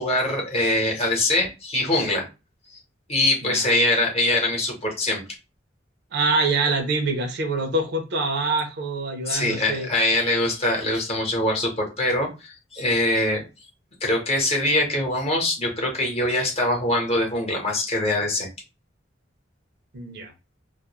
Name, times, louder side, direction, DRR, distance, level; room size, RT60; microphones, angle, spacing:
voice 1, 0.0-2.3 3.1-5.2 9.3-13.4 14.0-18.5, left 1 dB, 35° left, -1 dB, 0.9 m, -23 dB
voice 2, 6.1-9.9 19.9-20.3, right 3 dB, 60° right, 5 dB, 0.6 m, -25 dB
2.3 x 2.1 x 2.8 m, 0.28 s
head